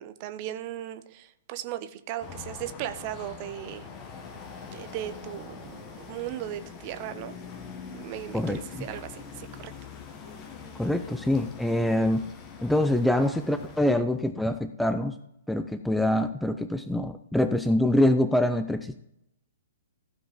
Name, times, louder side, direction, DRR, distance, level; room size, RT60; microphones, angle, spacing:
voice 1, 0.0-3.9 4.7-7.3 7.9-9.7, right 12 dB, 35° right, 11 dB, 0.7 m, -37 dB
sound 1, 2.2-13.9, left 6 dB, 25° left, 1.3 m, -43 dB
voice 2, 8.3-8.9 10.8-12.3 12.6-15.1 15.5-19.0, left 1 dB, ahead, 9 dB, 0.5 m, -25 dB
15.0 x 5.2 x 5.1 m, 0.78 s
figure-of-eight pair, 115°, 0 cm